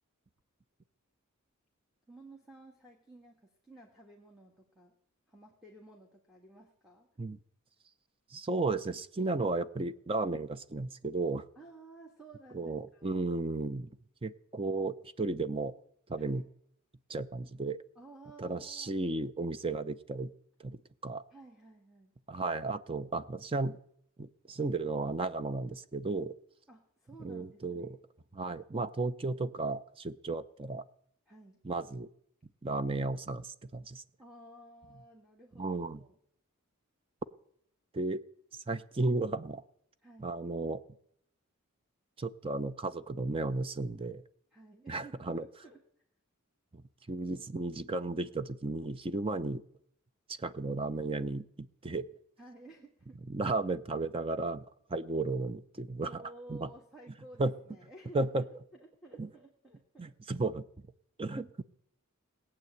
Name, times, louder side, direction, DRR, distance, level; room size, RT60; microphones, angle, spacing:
voice 1, 2.1-4.9 5.3-7.1 11.5-13.2 16.2-16.5 17.9-19.0 21.3-22.1 26.7-28.0 31.3-31.6 34.2-36.2 40.0-40.3 44.5-45.8 52.4-53.6 56.0-60.2, right 2 dB, ahead, -2 dB, 1.6 m, -54 dB
voice 2, 8.3-11.5 12.5-13.9 14.2-15.7 16.1-16.4 17.1-17.8 18.4-20.3 20.6-21.2 22.3-23.8 24.2-26.3 27.2-28.0 28.3-30.8 31.6-32.1 32.6-34.0 35.6-36.0 37.9-38.2 38.5-39.6 40.2-40.8 42.2-44.2 44.9-45.4 46.7-46.8 47.1-49.6 50.3-52.1 53.3-54.6 54.9-56.2 56.5-56.7 57.4-57.5 58.1-58.4 59.2-59.3 60.0-60.6 61.2-61.6, right 3 dB, 25° right, 13 dB, 0.5 m, -34 dB
18.0 x 8.6 x 7.9 m, 0.71 s
head